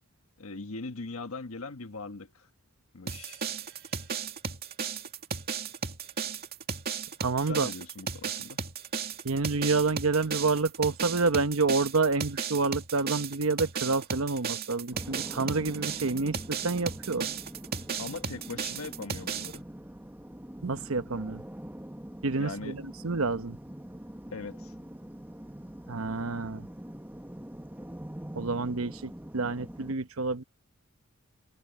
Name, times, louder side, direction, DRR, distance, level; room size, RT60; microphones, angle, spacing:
voice 1, 0.4-2.5 2.9-3.4 7.4-8.6 18.0-19.6 22.3-22.8 24.3-24.7, left 3 dB, 90° left, 1.4 m, -40 dB
sound 1, 3.1-19.6, right 6 dB, 50° right, 2.4 m, -35 dB
voice 2, 7.2-7.7 9.2-17.3 20.6-21.4 22.2-23.6 25.9-26.7 28.3-30.4, right 3 dB, 75° right, 1.0 m, -28 dB
sound 2, 14.9-29.9, equal, 10° right, 1.1 m, -44 dB
head